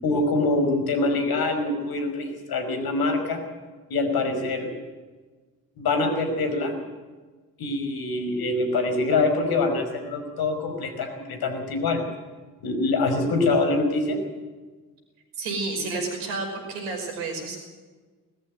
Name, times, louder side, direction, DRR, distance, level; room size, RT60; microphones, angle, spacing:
voice 1, 0.0-3.4 3.9-4.7 5.8-6.7 7.6-12.0 12.6-14.2, left 3 dB, 60° left, 6 dB, 5.2 m, -24 dB
voice 2, 15.4-17.6, right 3 dB, 80° right, 3 dB, 5.6 m, -30 dB
20.5 x 14.5 x 9.4 m, 1.3 s
hypercardioid pair, 45°, 41 cm